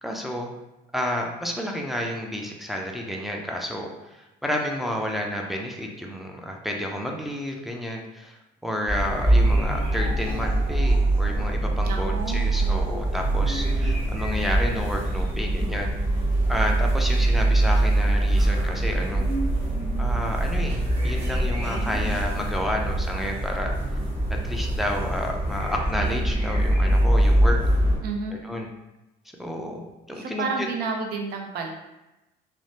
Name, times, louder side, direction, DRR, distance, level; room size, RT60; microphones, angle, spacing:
voice 1, 0.0-0.5 0.9-15.9 16.5-19.3 20.0-23.7 24.4-27.6 28.3-28.7 29.4-29.8 30.1-30.7, equal, ahead, 0 dB, 0.4 m, -30 dB
sound 1, 8.9-28.0, right 1 dB, 35° right, 1.4 m, -23 dB
voice 2, 11.8-12.5 28.0-28.4 30.2-31.7, right 4 dB, 70° right, 2 dB, 0.5 m, -30 dB
3.1 x 2.1 x 2.7 m, 0.97 s
cardioid pair, 110°, 17 cm